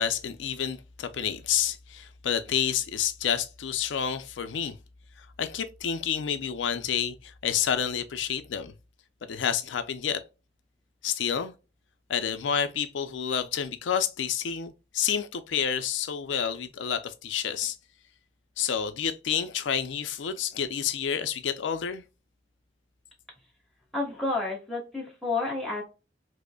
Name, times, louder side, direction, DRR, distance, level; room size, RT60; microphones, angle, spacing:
voice 1, 0.0-4.8 5.2-8.7 9.2-10.2 11.0-11.5 12.1-17.8 18.6-22.0, left 8 dB, 85° left, 0.4 m, -29 dB
voice 2, 23.9-25.8, left 3 dB, ahead, 1.4 m, -30 dB
4.8 x 2.0 x 2.2 m
head